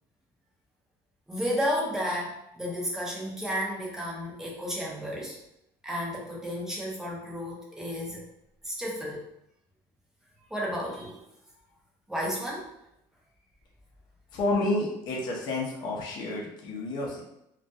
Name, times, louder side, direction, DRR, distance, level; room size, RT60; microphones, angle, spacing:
voice 1, 1.3-5.4 5.8-8.2 8.6-9.3 10.5-11.2 12.1-12.7, equal, 5° right, -3 dB, 0.6 m, -32 dB
voice 2, 14.3-17.2, left 2 dB, 50° left, -2 dB, 0.6 m, -30 dB
2.2 x 2.1 x 2.6 m, 0.82 s
cardioid pair, 130°, 9 cm